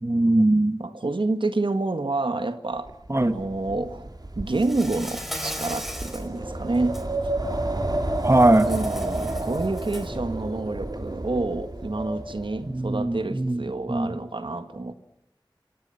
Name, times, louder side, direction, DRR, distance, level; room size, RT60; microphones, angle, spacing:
voice 1, 0.0-0.8 3.1-3.4 8.2-8.7 12.7-14.1, right 1 dB, 35° right, 11 dB, 1.5 m, -21 dB
voice 2, 0.8-2.9 3.2-4.1 4.4-7.0 8.6-14.9, right 2 dB, 75° right, 10 dB, 1.8 m, -28 dB
Wind, 2.9-12.9, right 2 dB, 50° right, 4.2 m, -31 dB
Insect, 4.5-6.3 6.7-7.0 8.3-10.2, equal, 5° right, 4.9 m, -37 dB
26.5 x 26.5 x 5.8 m, 0.84 s
wide cardioid pair, 55°, 9 cm